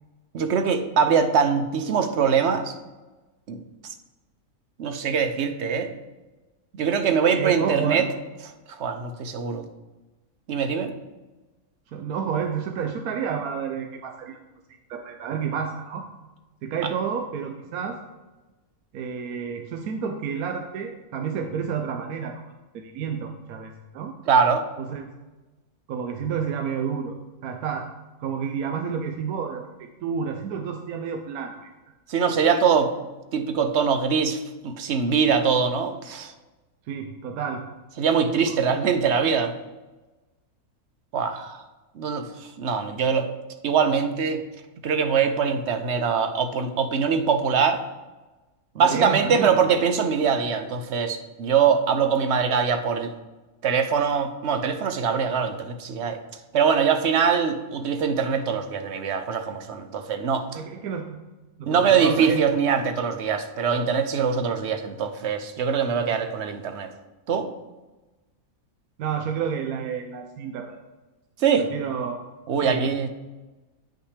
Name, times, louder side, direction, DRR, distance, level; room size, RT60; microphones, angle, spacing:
voice 1, 0.3-2.7 3.5-3.6 4.8-5.9 6.7-8.1 8.7-9.6 10.5-10.9 24.3-24.7 32.1-32.9 33.3-36.3 38.0-39.5 41.1-41.6 42.0-43.3 43.6-44.4 44.8-47.8 48.8-53.1 53.6-56.2 56.5-60.6 61.7-66.9 67.3-67.5 71.4-71.7 72.5-73.1, right 6 dB, 60° right, 8 dB, 0.8 m, -23 dB
voice 2, 7.4-8.1 11.9-14.4 14.9-16.1 16.6-18.0 18.9-22.3 22.7-24.1 24.8-25.1 25.9-27.9 28.2-29.7 30.0-31.7 36.9-37.6 38.5-38.6 48.8-49.5 60.5-61.2 61.6-62.4 69.0-70.8 71.7-72.3 72.6-73.1, right 7 dB, 80° right, 4 dB, 1.1 m, -30 dB
8.7 x 5.8 x 3.3 m, 1.1 s
omnidirectional pair, 1.5 m